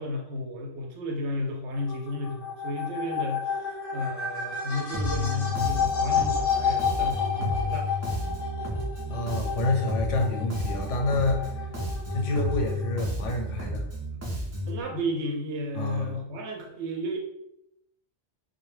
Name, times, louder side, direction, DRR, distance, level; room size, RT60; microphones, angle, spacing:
voice 1, 0.0-3.5 3.9-7.9 14.7-17.2, left 1 dB, 70° right, 1 dB, 0.8 m, -32 dB
sound 1, 1.7-13.0, left 6 dB, 60° left, 0.6 m, -31 dB
Bass guitar, 4.9-14.8, left 1 dB, 25° right, 0.3 m, -32 dB
voice 2, 9.1-11.5 12.1-13.9 15.7-16.2, left 2 dB, 85° left, 2 dB, 0.9 m, -28 dB
2.1 x 2.1 x 3.1 m, 0.79 s
omnidirectional pair, 1.2 m